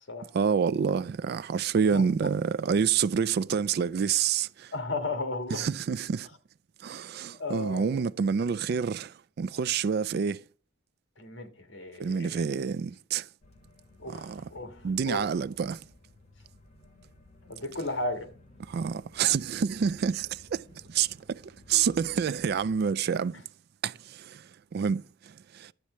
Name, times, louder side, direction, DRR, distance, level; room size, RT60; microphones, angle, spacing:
voice 1, 0.3-4.7 5.5-6.3 6.8-10.4 12.0-13.3 14.1-14.5 14.8-15.8 18.7-23.3 23.8-25.7, right 6 dB, 50° right, 0.3 m, -28 dB
voice 2, 1.9-2.3 4.7-5.7 7.4-8.0 11.2-12.4 14.0-15.3 17.4-18.3, left 2 dB, 70° left, 1.8 m, -35 dB
sound 1, 13.4-22.7, left 1 dB, 35° left, 2.4 m, -56 dB
11.5 x 8.3 x 3.2 m
head